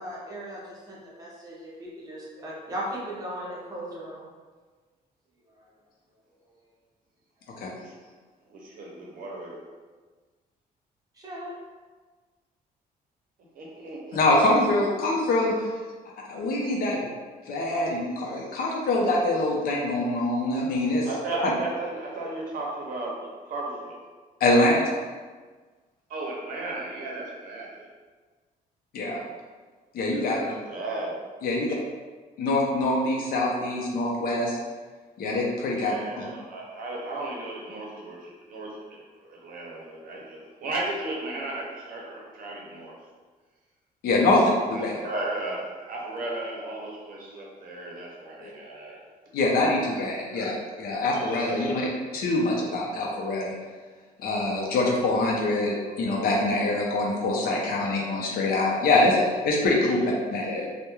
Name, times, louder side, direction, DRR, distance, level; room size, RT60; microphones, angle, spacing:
voice 1, 0.0-4.2 11.2-11.5, right 1 dB, 25° right, -5 dB, 0.7 m, -37 dB
voice 2, 8.5-9.6 13.5-14.4 21.0-24.0 26.1-27.9 30.1-31.1 35.7-42.9 44.1-44.4 44.7-49.0 51.1-51.2 51.5-51.7 59.8-60.0, right 2 dB, 65° right, -2 dB, 0.6 m, -35 dB
voice 3, 14.1-15.5 16.3-17.0 17.5-21.1 24.4-25.0 28.9-29.2 29.9-30.4 31.4-31.7 32.4-34.6 35.2-36.3 44.0-44.9 48.4-48.5 49.3-51.9 52.1-53.5 54.2-60.7, left 2 dB, 70° left, -2 dB, 0.6 m, -24 dB
2.2 x 2.1 x 2.9 m, 1.4 s
cardioid pair, 150°, 16 cm